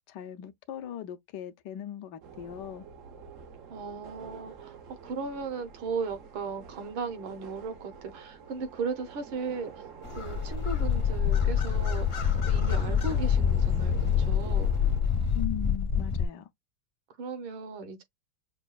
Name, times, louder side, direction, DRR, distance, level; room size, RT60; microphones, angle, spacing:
voice 1, 0.1-2.9 15.3-16.5, left 10 dB, 75° left, 1.0 m, -39 dB
sound 1, 2.2-15.1, right 6 dB, 90° right, 0.7 m, -47 dB
voice 2, 3.7-9.7 10.2-14.7 17.2-18.0, right 4 dB, 75° right, 1.6 m, -36 dB
sound 2, 10.0-16.3, left 7 dB, 45° left, 0.8 m, -26 dB
6.1 x 2.2 x 2.3 m
omnidirectional pair, 2.4 m